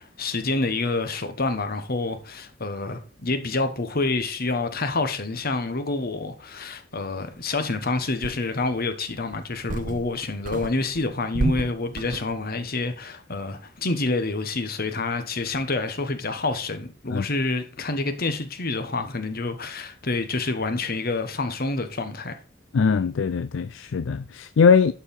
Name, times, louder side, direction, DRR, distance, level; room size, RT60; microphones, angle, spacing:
voice 1, 0.0-22.4, left 3 dB, 50° left, 1.3 m, -28 dB
sound 1, 8.2-8.8 9.3-10.2 10.4-12.4, right 2 dB, 45° right, 0.6 m, -31 dB
voice 2, 22.7-24.9, left 5 dB, 70° left, 0.4 m, -21 dB
11.5 x 4.7 x 5.4 m
head